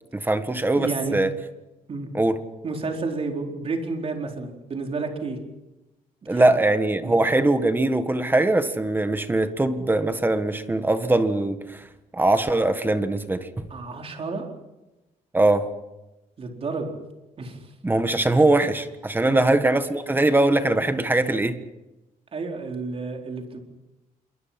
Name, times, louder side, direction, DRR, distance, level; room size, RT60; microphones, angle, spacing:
voice 1, 0.1-1.3 2.1-2.4 6.3-11.8 12.1-13.7 15.3-15.7 17.8-21.6, right 2 dB, 15° right, 9 dB, 1.6 m, -21 dB
voice 2, 0.8-1.2 1.9-2.1 2.6-5.4 6.3-6.5 7.0-7.1 13.7-14.4 16.4-16.9 17.4-17.7 19.2-19.4 22.3-23.6, right 3 dB, 40° right, 2 dB, 4.6 m, -31 dB
27.5 x 23.5 x 6.0 m, 1.0 s
cardioid pair, 130°, 15 cm